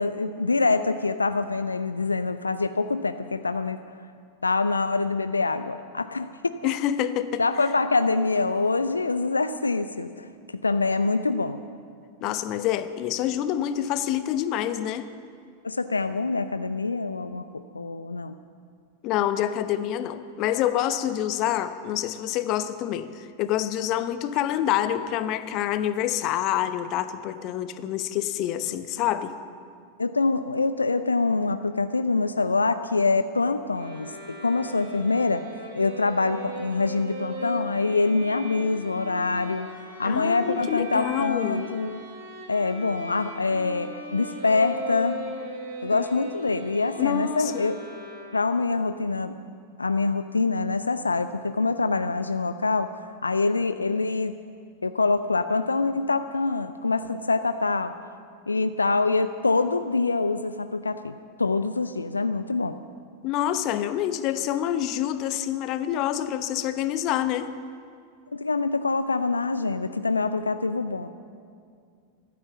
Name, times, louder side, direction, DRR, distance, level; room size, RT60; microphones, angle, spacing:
voice 1, 0.0-3.8 4.4-6.3 6.6-6.7 7.4-10.3 10.6-11.6 15.6-18.3 30.0-35.4 35.8-39.7 40.0-42.0 42.5-45.2 45.8-47.8 48.3-49.4 49.8-52.9 53.2-54.3 54.8-57.9 58.5-62.8 68.3-71.1, left 3 dB, 80° left, 11 dB, 0.4 m, -25 dB
voice 2, 6.6-7.4 12.2-15.1 19.0-29.3 40.0-41.8 45.9-46.0 47.0-47.7 63.2-67.5, left 11 dB, 40° left, 12 dB, 0.8 m, -27 dB
sound 1, 33.7-48.7, equal, 75° right, 4.3 m, -40 dB
14.5 x 13.0 x 7.1 m, 2.2 s
figure-of-eight pair, 90°, 0 cm